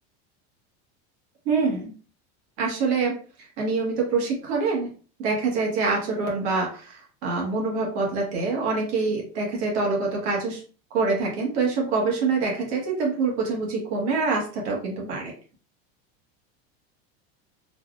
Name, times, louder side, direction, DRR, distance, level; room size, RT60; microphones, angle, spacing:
voice 1, 1.4-1.9 2.6-3.1 3.4-4.9 5.2-10.6 10.9-15.3, right 4 dB, 70° right, -2 dB, 1.5 m, -25 dB
4.2 x 2.7 x 2.4 m, 0.39 s
supercardioid pair, 165°, 33 cm